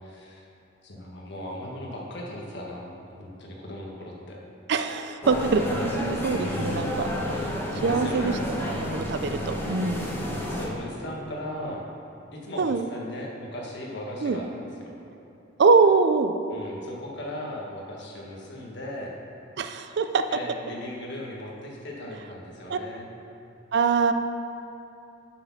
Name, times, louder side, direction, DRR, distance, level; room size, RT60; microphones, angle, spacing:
voice 1, 0.0-0.4 0.8-4.4 6.4-6.9 7.9-8.4 10.5-11.9 12.3-14.9 16.5-19.1 20.3-23.1, left 1 dB, 65° left, -2 dB, 1.4 m, -37 dB
voice 2, 4.7-7.1 7.3-7.4 7.8-8.3 8.6-10.1 12.6-12.8 14.2-14.4 15.6-16.3 19.6-20.2 22.7-22.8 23.7-24.1, right 4 dB, 60° right, 8 dB, 0.4 m, -23 dB
sound 1, 5.2-10.7, left 1 dB, 10° left, 1.1 m, -30 dB
6.5 x 6.1 x 5.8 m, 3.0 s
head